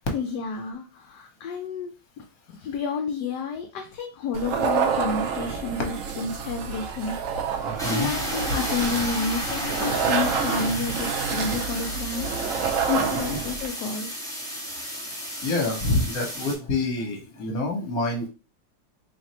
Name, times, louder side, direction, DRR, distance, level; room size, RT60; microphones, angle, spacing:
voice 1, 0.1-2.2 2.5-7.2 7.6-12.3 12.9-14.1, left 5 dB, 70° left, 3 dB, 1.1 m, -30 dB
sound 1, 4.3-13.7, right 6 dB, 70° right, 0.7 m, -28 dB
voice 2, 7.7-8.1 13.0-13.4 15.4-18.3, left 2 dB, 55° left, 1 dB, 1.4 m, -27 dB
sound 2, 7.8-16.5, equal, 5° left, 0.7 m, -33 dB
3.2 x 2.5 x 4.2 m, 0.32 s
omnidirectional pair, 2.0 m